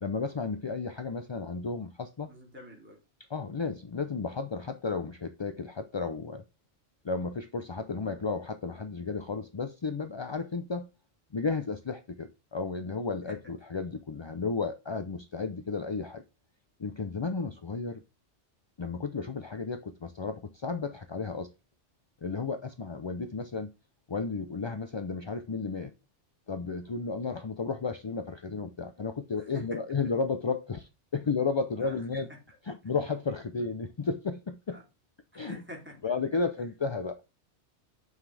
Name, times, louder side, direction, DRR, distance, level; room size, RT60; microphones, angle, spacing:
voice 1, 0.0-2.3 3.3-6.4 7.0-10.9 11.3-16.2 16.8-18.0 18.8-21.5 22.2-23.7 24.1-25.9 26.5-32.3 32.7-34.8 35.3-35.6 36.0-37.3, left 4 dB, 40° left, 0.4 m, -33 dB
voice 2, 2.3-3.0 13.3-13.4 29.4-29.8 31.8-32.5 34.7-34.8 35.3-36.1 36.6-36.7, equal, 10° right, 3.0 m, -47 dB
7.3 x 5.9 x 3.3 m
omnidirectional pair, 1.2 m